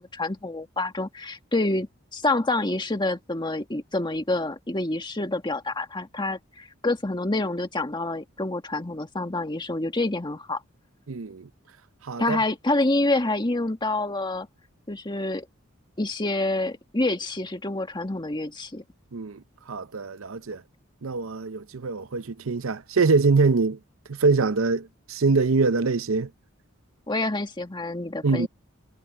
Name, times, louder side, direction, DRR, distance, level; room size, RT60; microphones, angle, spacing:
voice 1, 0.0-10.6 12.2-14.5 14.9-15.5 16.0-18.8 27.1-28.5, left 2 dB, 20° left, 1.8 m, -27 dB
voice 2, 11.1-11.5 12.0-12.4 19.1-20.6 21.0-23.8 24.1-26.3 28.2-28.5, right 4 dB, 70° right, 0.7 m, -24 dB
head